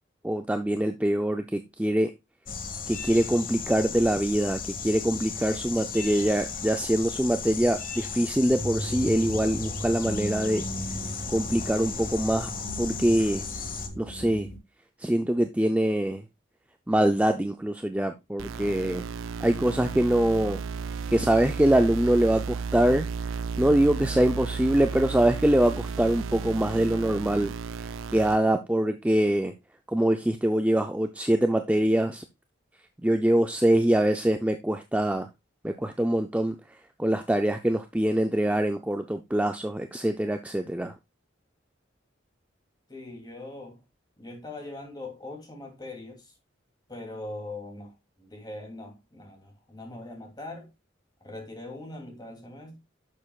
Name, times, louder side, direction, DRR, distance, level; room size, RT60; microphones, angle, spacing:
voice 1, 0.2-2.1 2.9-10.6 11.3-12.5 12.8-13.5 14.0-14.5 15.0-16.2 16.9-19.0 19.4-20.6 21.1-23.1 23.6-27.5 27.8-29.5 29.9-32.2 33.0-35.3 35.6-40.9, right 1 dB, 5° right, 0.4 m, -24 dB
sound 1, 2.5-13.9, left 5 dB, 45° left, 1.3 m, -36 dB
sound 2, 8.5-14.6, equal, 80° left, 4.6 m, -36 dB
sound 3, 18.4-28.4, right 5 dB, 80° right, 0.5 m, -34 dB
voice 2, 42.9-43.8 44.2-46.4 46.9-50.7 51.2-52.8, left 2 dB, 20° left, 2.7 m, -41 dB
10.5 x 6.6 x 2.4 m
head